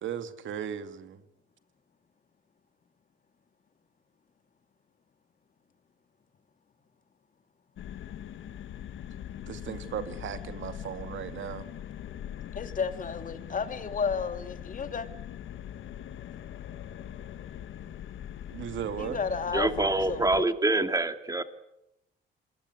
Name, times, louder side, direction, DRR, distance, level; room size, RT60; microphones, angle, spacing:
voice 1, 0.0-1.2 9.5-11.7 18.5-19.2, right 9 dB, 75° right, 10 dB, 2.5 m, -36 dB
sound 1, 7.8-20.4, left 10 dB, 75° left, 1.7 m, -42 dB
voice 2, 12.5-15.1 19.0-20.5, left 5 dB, 40° left, 9 dB, 2.9 m, -32 dB
voice 3, 19.5-21.4, right 2 dB, 15° right, 9 dB, 2.5 m, -26 dB
27.5 x 20.0 x 9.7 m, 0.83 s
cardioid pair, 90°, 20 cm